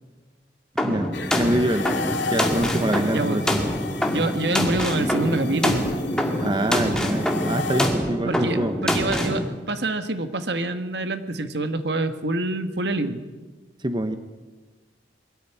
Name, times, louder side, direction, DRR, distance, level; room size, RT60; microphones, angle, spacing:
sound 1, 0.8-9.4, equal, 5° left, 2.1 m, -25 dB
voice 1, 0.8-1.9 2.3-3.7 6.4-8.7 13.8-14.2, right 1 dB, 25° right, 9 dB, 0.8 m, -25 dB
sound 2, 1.1-7.9, left 4 dB, 80° left, 1.8 m, -34 dB
voice 2, 4.1-5.9 8.3-13.2, right 2 dB, 65° right, 9 dB, 1.4 m, -26 dB
22.0 x 13.5 x 9.3 m, 1.3 s
head